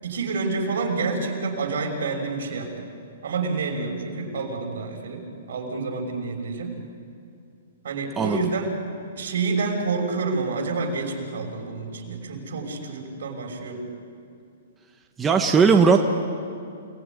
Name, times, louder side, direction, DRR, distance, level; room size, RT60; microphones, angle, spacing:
voice 1, 0.0-2.9 3.2-6.7 7.8-8.7 9.2-13.8, right 4 dB, 70° right, 2 dB, 6.3 m, -28 dB
voice 2, 15.2-16.0, right 5 dB, 10° right, 3 dB, 1.1 m, -17 dB
29.5 x 20.0 x 9.8 m, 2.5 s
hypercardioid pair, 165°, 0 cm